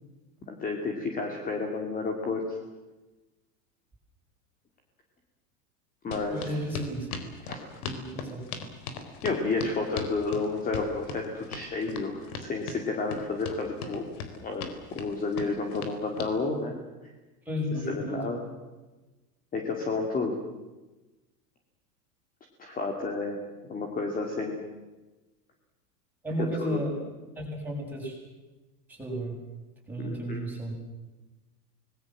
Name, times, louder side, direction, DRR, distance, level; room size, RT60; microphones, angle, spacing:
voice 1, 0.5-2.6 6.0-6.6 7.4-7.7 9.2-14.0 14.4-16.7 17.9-18.4 19.5-20.4 22.6-23.4 23.7-24.6 26.6-26.8 30.0-30.4, left 3 dB, 20° left, 3 dB, 2.7 m, -31 dB
sound 1, 6.1-16.3, left 4 dB, 65° left, 4.1 m, -38 dB
voice 2, 6.3-7.1 7.8-8.4 17.5-18.3 26.2-27.0 27.4-28.2 28.9-29.4 29.9-30.7, equal, 5° right, -3 dB, 7.5 m, -33 dB
26.0 x 20.5 x 7.6 m, 1.1 s
supercardioid pair, 150°, 47 cm